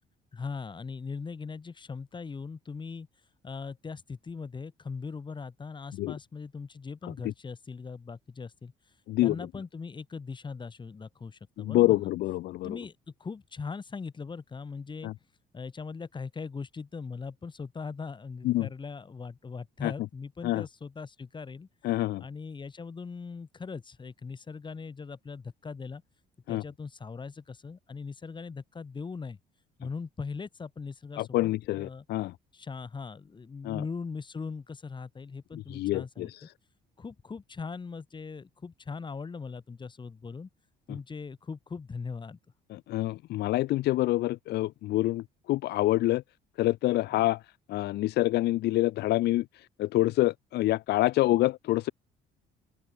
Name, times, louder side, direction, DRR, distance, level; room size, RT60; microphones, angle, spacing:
voice 1, 0.3-3.1 3.4-8.7 9.2-12.1 12.6-15.1 15.5-21.7 22.2-26.0 26.5-29.4 29.8-32.1 32.5-36.3 37.0-40.5 40.9-42.4 47.1-47.3, left 5 dB, 25° left, 7.1 m, -40 dB
voice 2, 11.6-12.8 15.0-15.1 18.4-18.7 19.8-19.9 20.4-20.6 21.8-22.2 26.5-26.6 31.2-32.3 33.6-33.8 35.7-36.4 42.7-46.2 46.6-47.4 47.7-49.4 49.8-51.9, left 16 dB, 75° left, 1.5 m, -26 dB
open air
cardioid pair, 110°, 17 cm